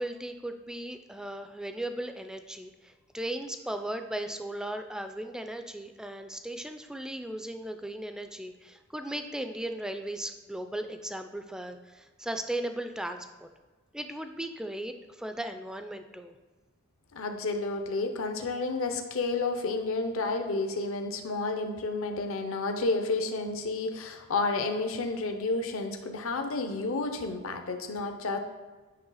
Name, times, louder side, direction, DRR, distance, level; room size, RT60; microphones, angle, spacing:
voice 1, 0.0-13.5 13.9-16.3, right 1 dB, 5° right, 7 dB, 0.4 m, -37 dB
voice 2, 17.1-28.4, left 3 dB, 65° left, 5 dB, 0.7 m, -31 dB
9.6 x 3.3 x 5.6 m, 1.3 s
head